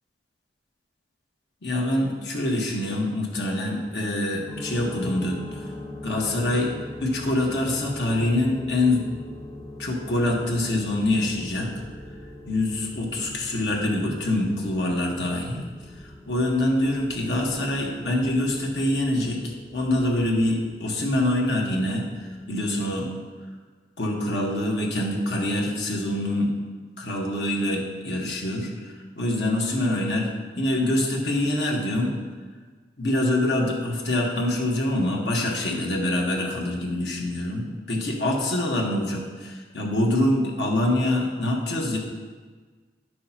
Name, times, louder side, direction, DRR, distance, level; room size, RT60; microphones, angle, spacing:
voice 1, 1.6-5.4 6.0-6.7 7.0-9.1 9.8-11.7 12.5-15.7 16.3-23.1 24.0-26.5 27.0-28.7 29.2-30.3 30.5-32.2 33.0-42.0, left 1 dB, 80° left, -1 dB, 1.4 m, -25 dB
sound 1, 4.5-22.8, left 1 dB, 15° left, 1.3 m, -42 dB
10.0 x 6.3 x 2.9 m, 1.4 s
head